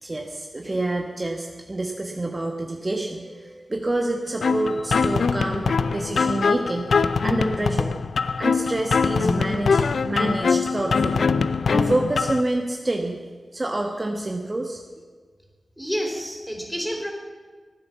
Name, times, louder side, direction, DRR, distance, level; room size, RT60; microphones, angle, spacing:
voice 1, 0.0-6.9 7.2-8.0 8.4-11.2 11.7-13.2 13.5-14.8, right 2 dB, 35° right, 2 dB, 1.2 m, -27 dB
sound 1, 4.4-12.4, left 5 dB, 85° left, 0.5 m, -22 dB
voice 2, 15.8-17.1, equal, ahead, 1 dB, 3.8 m, -29 dB
15.0 x 9.5 x 7.2 m, 1.5 s
cardioid pair, 55°, 0 cm